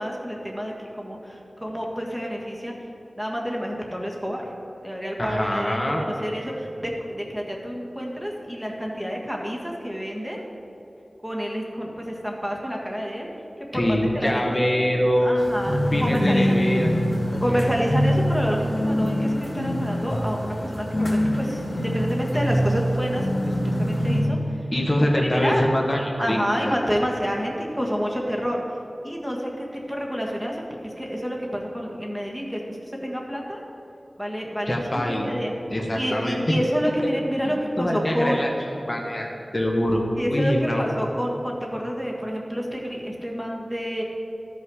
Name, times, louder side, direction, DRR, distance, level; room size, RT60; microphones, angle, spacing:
voice 1, 0.0-2.8 3.2-4.4 4.8-10.4 11.2-13.3 13.7-14.6 15.2-16.6 17.4-24.7 25.0-25.7 26.2-28.6 29.0-33.6 34.2-35.5 35.9-38.4 40.2-44.0, equal, 5° right, -1 dB, 1.6 m, -29 dB
voice 2, 5.2-6.0 13.7-15.4 15.9-16.9 17.3-17.6 24.7-26.4 26.6-26.7 34.7-35.3 35.7-36.5 37.4-38.5 38.9-40.9, equal, 30° left, -1 dB, 1.3 m, -24 dB
sound 1, 15.4-24.2, equal, 75° left, 2.5 m, -38 dB
sound 2, 15.7-24.5, equal, 60° left, 1.8 m, -24 dB
13.0 x 5.8 x 4.9 m, 2.9 s
wide cardioid pair, 60°, 0 cm